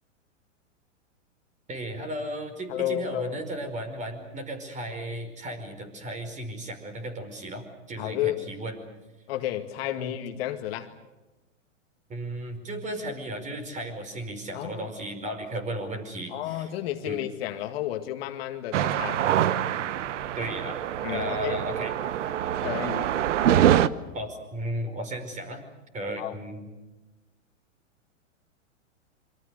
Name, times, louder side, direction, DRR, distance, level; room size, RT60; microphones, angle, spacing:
voice 1, 1.7-8.8 10.0-10.1 12.1-16.7 17.1-17.2 20.4-20.8 21.1-22.0 24.1-25.6 25.9-26.7, right 1 dB, 20° right, 9 dB, 5.2 m, -35 dB
voice 2, 2.7-3.4 8.0-8.4 9.3-10.9 14.5-14.8 16.3-19.2 21.0-21.6 22.6-23.1 26.2-26.3, left 13 dB, 50° left, 6 dB, 2.0 m, -32 dB
sound 1, 18.7-23.9, right 11 dB, 70° right, 1.1 m, -25 dB
27.5 x 25.0 x 6.6 m, 1.1 s
hypercardioid pair, 130°, 38 cm